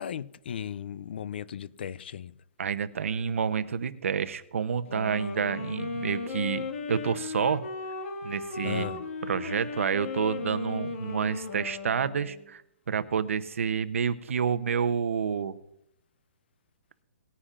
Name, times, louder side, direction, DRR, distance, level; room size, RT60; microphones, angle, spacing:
voice 1, 0.0-2.3 8.6-9.0, left 8 dB, 45° left, 0.4 m, -36 dB
voice 2, 2.6-7.6 8.2-12.6 12.9-15.6, right 7 dB, 70° right, 0.8 m, -29 dB
Wind instrument woodwind instrument, 4.8-12.5, left 4 dB, 65° left, 2.0 m, -36 dB
19.5 x 9.9 x 2.5 m
hypercardioid pair, 170°, 7 cm